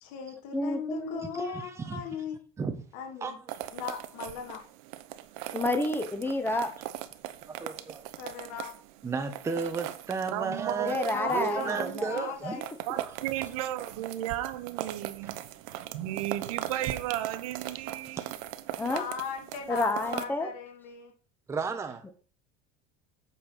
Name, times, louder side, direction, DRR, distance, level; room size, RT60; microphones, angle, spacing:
voice 1, 0.0-2.4 2.9-3.4 3.7-4.6 5.8-5.9 8.2-8.7 11.1-12.7 18.9-21.1, left 7 dB, 65° left, 2.1 m, -38 dB
voice 2, 0.5-1.6 5.5-6.7 10.8-12.1 12.5-12.6 18.8-19.0 19.7-20.5, left 2 dB, 10° left, 1.3 m, -30 dB
voice 3, 1.3-2.0 2.6-2.8 3.2-3.3 7.4-8.0 9.0-11.0 11.3-12.6 18.2-18.3 21.5-22.0, right 5 dB, 15° right, 0.8 m, -33 dB
sound 1, 3.5-20.2, right 13 dB, 70° right, 0.9 m, -40 dB
voice 4, 10.3-12.3 12.9-18.3, right 14 dB, 85° right, 1.0 m, -35 dB
8.4 x 4.4 x 5.8 m
supercardioid pair, 130°, 17 cm